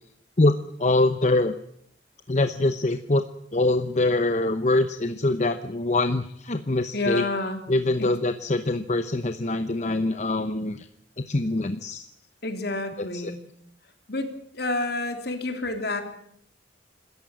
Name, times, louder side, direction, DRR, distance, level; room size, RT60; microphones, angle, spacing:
voice 1, 0.4-1.5 2.3-3.2 3.5-7.2 7.7-10.9 11.2-12.1 13.1-13.3, left 2 dB, 40° left, 10 dB, 0.9 m, -24 dB
voice 2, 6.9-7.6 8.0-8.1 12.4-13.3 14.1-14.3 14.5-16.0, left 2 dB, 55° left, 6 dB, 3.3 m, -28 dB
26.5 x 14.0 x 8.8 m, 0.70 s
head